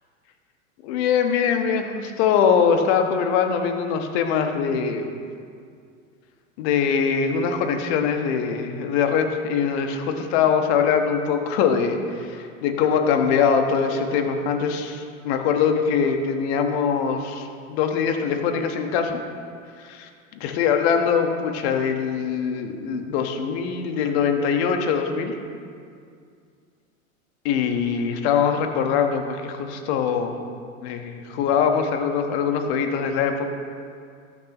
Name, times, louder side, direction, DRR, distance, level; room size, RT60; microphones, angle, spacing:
voice 1, 0.8-5.1 6.6-19.1 19.8-25.3 27.4-30.4 30.8-33.5, left 6 dB, 50° left, 5 dB, 1.4 m, -22 dB
20.0 x 6.7 x 3.0 m, 2.3 s
figure-of-eight pair, 90°, 41 cm